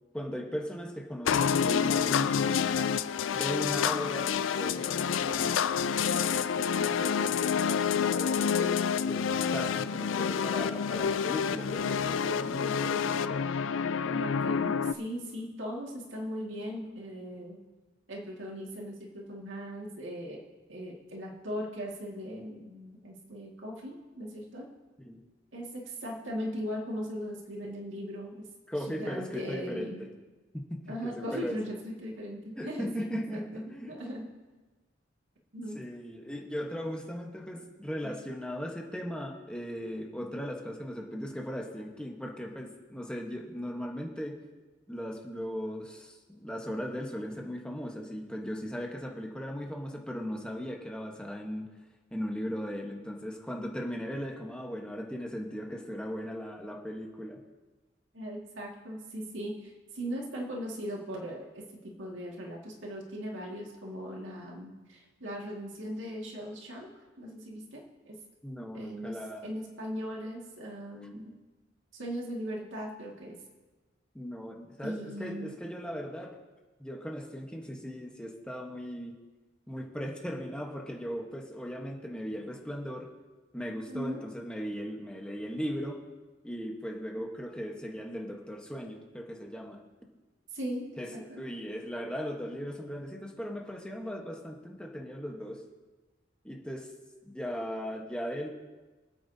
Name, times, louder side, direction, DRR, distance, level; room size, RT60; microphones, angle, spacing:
voice 1, 0.1-3.0 3.3-5.8 6.1-13.4 25.0-25.2 28.7-30.1 30.5-31.6 32.6-34.0 35.7-44.4 44.9-51.7 52.1-57.4 68.4-69.5 74.1-76.4 76.8-79.1 79.7-83.1 83.5-86.0 86.4-89.8 91.0-95.6 96.4-96.9 97.2-98.5, equal, 5° left, 0 dB, 1.1 m, -38 dB
sound 1, 1.3-14.9, left 7 dB, 90° left, 0.4 m, -28 dB
voice 2, 13.9-17.6 18.1-20.4 20.7-24.7 25.5-28.4 28.9-30.0 30.9-34.3 35.5-35.8 38.0-38.1 58.1-66.9 67.2-68.2 68.7-71.3 71.9-73.4 74.8-75.6 83.9-84.2 90.5-90.9 91.1-91.4, equal, 85° right, -2 dB, 2.0 m, -39 dB
25.0 x 8.7 x 2.8 m, 1.2 s
head